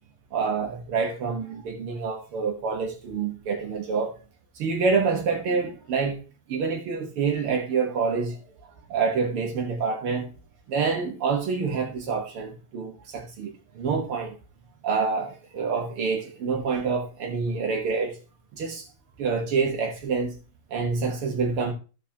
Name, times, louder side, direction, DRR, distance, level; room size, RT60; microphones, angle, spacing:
voice 1, 0.3-4.2 4.6-6.2 6.5-10.3 10.7-14.4 14.8-18.2 18.5-18.9 19.2-20.4 20.7-21.7, right 5 dB, 80° right, 2.3 m, -27 dB
14.5 x 5.1 x 2.8 m
omnidirectional pair, 2.4 m